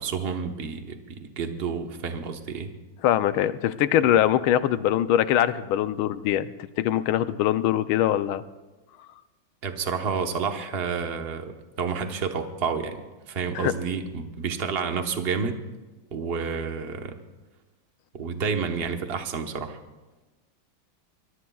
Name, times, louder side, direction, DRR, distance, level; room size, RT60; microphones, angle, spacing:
voice 1, 0.0-2.7 9.6-13.0 13.3-15.6 16.1-17.1 18.1-19.8, right 5 dB, 35° right, 5 dB, 1.0 m, -30 dB
voice 2, 3.0-6.5 6.8-8.4 13.5-13.7, left 11 dB, 80° left, 13 dB, 1.5 m, -22 dB
24.5 x 21.5 x 2.3 m, 1.2 s
omnidirectional pair, 2.3 m